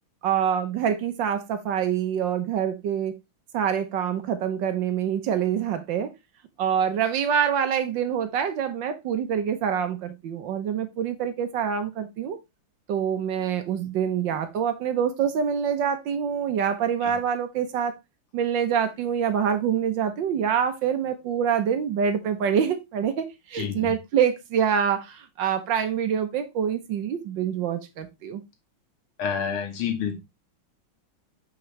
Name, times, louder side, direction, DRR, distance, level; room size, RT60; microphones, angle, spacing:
voice 1, 0.2-3.2 3.5-6.1 6.6-12.4 12.9-17.9 18.3-28.4, right 8 dB, 65° right, 1.5 m, -26 dB
voice 2, 23.5-23.9 29.2-30.2, left 7 dB, 85° left, 2.3 m, -29 dB
8.5 x 5.0 x 3.2 m
omnidirectional pair, 2.3 m